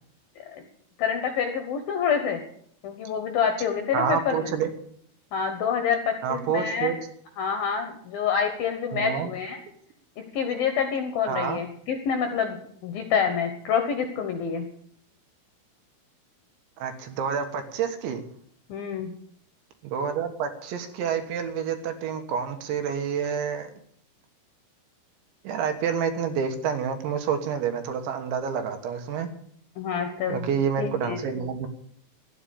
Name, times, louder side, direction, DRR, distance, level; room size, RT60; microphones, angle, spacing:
voice 1, 1.0-2.4 2.8-4.5 5.3-6.9 7.4-9.6 10.2-12.6 12.8-14.7 18.7-19.1 29.8-30.4 30.8-31.2, left 7 dB, 70° left, 6 dB, 2.3 m, -27 dB
voice 2, 3.9-4.7 6.2-7.0 8.9-9.3 11.3-11.6 16.8-18.2 19.8-23.7 25.5-29.3 30.3-31.7, right 7 dB, 70° right, 7 dB, 3.6 m, -28 dB
13.0 x 10.0 x 8.5 m, 0.65 s
omnidirectional pair, 5.7 m